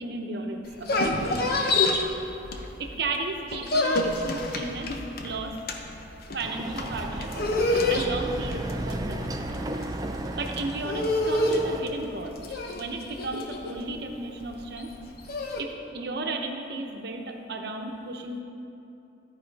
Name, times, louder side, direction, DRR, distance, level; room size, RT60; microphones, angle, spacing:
voice 1, 0.0-1.5 2.5-4.9 5.2-5.6 6.3-7.3 7.9-9.6 10.3-12.4 12.8-14.9 15.6-18.4, right 2 dB, 60° right, 2 dB, 0.9 m, -34 dB
sound 1, 0.6-3.0 3.3-15.6, left 2 dB, 55° left, 0.8 m, -28 dB
Chatter / Car passing by / Motorcycle, 6.4-11.8, right 1 dB, 20° right, 0.4 m, -34 dB
13.0 x 4.9 x 4.7 m, 2.9 s
head